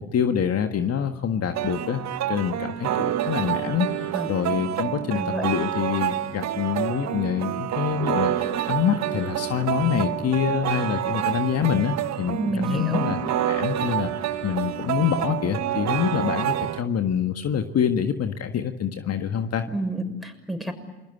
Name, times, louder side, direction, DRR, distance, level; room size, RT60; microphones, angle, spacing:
voice 1, 0.1-2.0 2.3-13.2 13.5-14.1 14.4-19.7, left 8 dB, 55° left, 7 dB, 1.7 m, -26 dB
sound 1, 1.5-16.8, right 12 dB, 65° right, 1.4 m, -28 dB
voice 2, 5.1-5.4 12.3-13.2 19.7-20.7, right 1 dB, ahead, 5 dB, 6.7 m, -29 dB
28.5 x 21.5 x 9.3 m, 1.0 s
hypercardioid pair, 55°, 30 cm